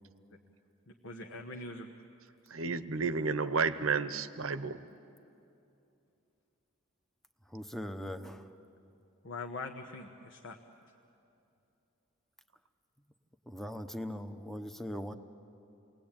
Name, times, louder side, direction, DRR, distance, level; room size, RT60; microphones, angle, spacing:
voice 1, 0.9-1.9 9.2-10.6, left 3 dB, 65° left, 3 dB, 1.2 m, -43 dB
voice 2, 2.5-4.8, right 4 dB, 85° right, 12 dB, 0.9 m, -31 dB
voice 3, 7.5-8.4 13.5-15.1, equal, ahead, 7 dB, 0.9 m, -40 dB
28.5 x 20.0 x 8.9 m, 2.8 s
head